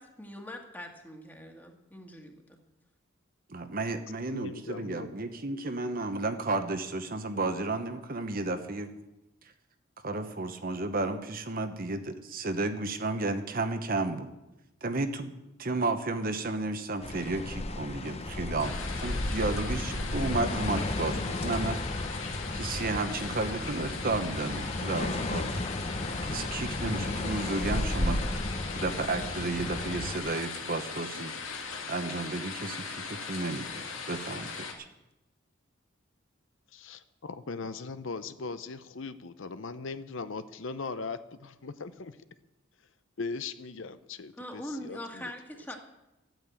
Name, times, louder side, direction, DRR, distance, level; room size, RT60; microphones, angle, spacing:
voice 1, 0.0-2.6 44.4-45.8, equal, 10° left, 3 dB, 1.8 m, -42 dB
voice 2, 3.5-8.9 10.0-14.3 14.8-15.3 15.6-21.8 22.5-25.6 26.2-28.2 28.8-31.3 31.9-34.7, right 2 dB, 45° right, 8 dB, 1.1 m, -32 dB
voice 3, 4.3-5.1 36.7-42.2 43.2-45.3, left 4 dB, 70° left, 12 dB, 0.7 m, -39 dB
sound 1, 17.0-30.2, left 1 dB, 30° left, 0.8 m, -33 dB
sound 2, 18.6-34.7, left 5 dB, 85° left, 2.1 m, -40 dB
13.0 x 9.0 x 8.4 m, 0.95 s
head